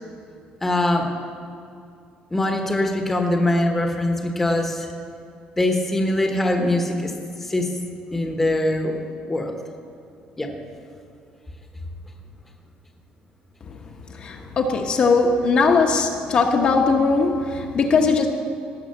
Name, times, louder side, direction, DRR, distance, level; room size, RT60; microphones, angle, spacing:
voice 1, 0.6-1.1 2.3-4.9 5.6-7.7 8.1-9.0 9.2-9.6 10.4-10.5 14.4-14.5, left 1 dB, 10° left, 3 dB, 1.0 m, -22 dB
voice 2, 14.1-18.3, left 4 dB, 40° left, 2 dB, 1.0 m, -20 dB
18.0 x 6.2 x 7.9 m, 2.5 s
cardioid pair, 175°, 3 cm